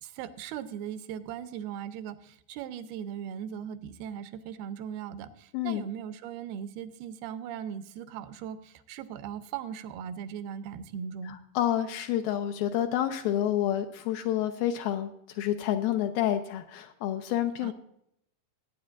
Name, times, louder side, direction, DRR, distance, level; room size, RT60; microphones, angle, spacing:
voice 1, 0.0-11.4 17.6-17.7, right 8 dB, 85° right, 11 dB, 2.6 m, -39 dB
voice 2, 5.5-5.9 11.3-17.7, left 11 dB, 80° left, 6 dB, 2.3 m, -29 dB
19.0 x 9.1 x 2.5 m, 0.74 s
omnidirectional pair, 4.5 m